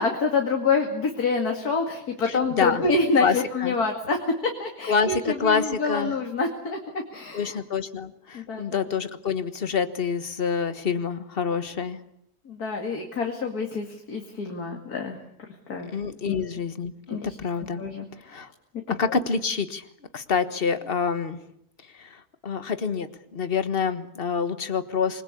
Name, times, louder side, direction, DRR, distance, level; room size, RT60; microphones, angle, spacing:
voice 1, 0.0-7.6 8.3-8.8 12.5-15.2 15.7-15.9 16.3-16.4 17.1-17.3 17.8-18.1 19.1-19.2, left 4 dB, 70° left, 2 dB, 2.9 m, -27 dB
voice 2, 2.3-2.8 3.2-3.7 4.9-6.1 7.3-12.0 15.8-17.8 18.3-18.5 18.9-19.8 20.1-21.4 22.0-25.2, left 5 dB, 40° left, 11 dB, 1.5 m, -27 dB
27.0 x 21.0 x 8.5 m, 0.73 s
omnidirectional pair, 1.7 m